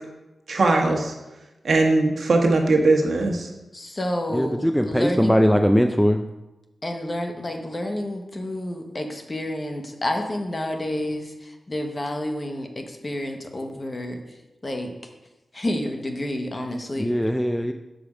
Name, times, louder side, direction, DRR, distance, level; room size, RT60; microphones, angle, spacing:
voice 1, 0.5-1.1 1.6-3.5, right 2 dB, 65° right, 1 dB, 1.2 m, -20 dB
voice 2, 3.7-5.4 6.8-14.2 14.6-14.9 15.5-17.1, left 1 dB, 30° left, 4 dB, 0.9 m, -29 dB
voice 3, 4.3-6.3 17.0-17.7, equal, ahead, 6 dB, 0.3 m, -20 dB
6.5 x 5.1 x 4.9 m, 1.0 s
wide cardioid pair, 100°, 0 cm